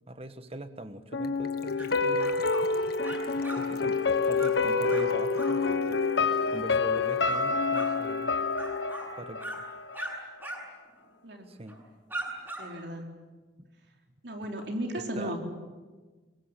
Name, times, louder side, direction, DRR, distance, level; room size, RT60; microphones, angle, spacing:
voice 1, 0.1-2.4 3.6-6.0 6.5-8.3 9.2-9.6 11.5-11.8 13.6-13.7 14.6-14.7 15.0-15.4, right 1 dB, 30° right, 10 dB, 1.4 m, -42 dB
sound 1, 1.1-10.1 10.4-10.5, left 4 dB, 75° left, 1.3 m, -28 dB
Gurgling / Trickle dribble / Fill (with liquid), 1.2-7.5 7.7-7.8 8.0-8.2 8.5-8.6, left 5 dB, 55° left, 1.7 m, -48 dB
sound 2, 1.8-1.9 2.2-2.6 3.0-3.6 3.9-4.1 4.3-4.5 4.9-5.1 5.3-5.6 6.9-7.4 7.7-7.9 8.5-9.1 9.4-9.6 9.9-10.1 10.4-10.6 10.9-11.0 11.7-11.8 12.1-12.6, right 1 dB, 10° right, 7.5 m, -39 dB
voice 2, 12.6-13.2 14.2-15.4, right 1 dB, 60° right, 2 dB, 4.0 m, -35 dB
25.0 x 20.5 x 9.8 m, 1.3 s
head